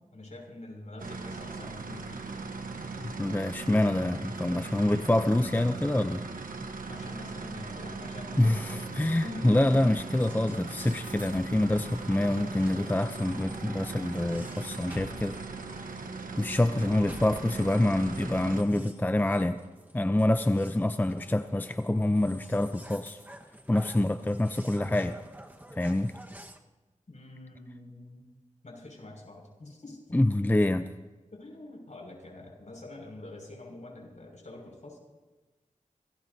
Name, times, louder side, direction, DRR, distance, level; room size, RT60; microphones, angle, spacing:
voice 1, 0.1-2.2 6.8-9.8 27.1-28.2 28.6-30.2 31.3-35.0, left 2 dB, 60° left, 0 dB, 6.2 m, -45 dB
sound 1, 1.0-18.6, right 3 dB, 90° right, 1.2 m, -39 dB
voice 2, 3.0-6.2 8.4-15.4 16.4-19.6 19.9-23.2 23.7-25.2 25.8-26.1 30.1-30.9, left 1 dB, 15° left, 9 dB, 0.5 m, -26 dB
sound 2, 9.8-26.6, right 1 dB, 15° right, 1.4 m, -50 dB
26.5 x 19.0 x 2.8 m, 1.2 s
wide cardioid pair, 55°, 14 cm